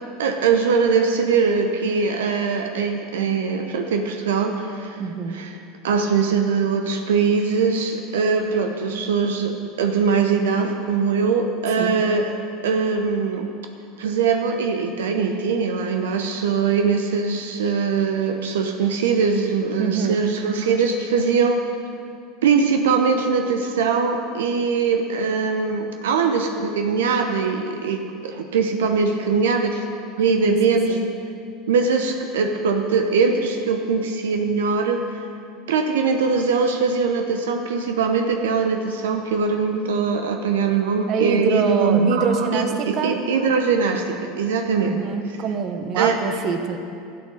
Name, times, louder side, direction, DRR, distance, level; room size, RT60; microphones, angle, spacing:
voice 1, 0.2-5.0 5.3-5.5 5.8-12.3 12.6-13.5 14.0-21.6 22.4-29.8 30.2-31.0 31.7-35.1 35.7-45.0 46.0-46.2, right 5 dB, 85° right, 4 dB, 0.8 m, -21 dB
voice 2, 5.0-5.4 11.8-12.0 19.8-20.2 30.4-31.1 41.1-43.2 44.8-46.8, right 6 dB, 50° right, 7 dB, 1.1 m, -25 dB
12.0 x 8.6 x 6.4 m, 2.4 s
hypercardioid pair, 95°, 0 cm